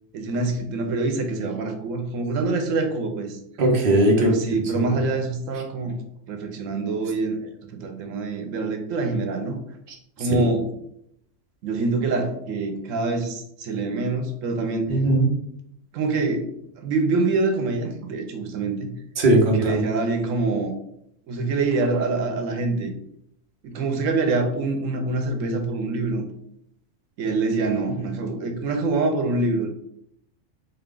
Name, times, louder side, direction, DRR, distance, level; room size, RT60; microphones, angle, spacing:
voice 1, 0.1-3.4 4.2-5.9 6.3-7.5 7.8-9.6 10.2-10.6 11.6-15.0 15.9-16.5 16.8-18.9 19.5-20.7 21.3-22.9 23.6-26.2 27.2-29.7, right 3 dB, 85° right, 5 dB, 1.1 m, -25 dB
voice 2, 3.6-4.3 4.7-5.0 10.4-10.5 14.9-15.3 19.2-19.8, right 1 dB, 45° right, -1 dB, 1.0 m, -19 dB
3.8 x 2.3 x 3.8 m, 0.73 s
omnidirectional pair, 1.3 m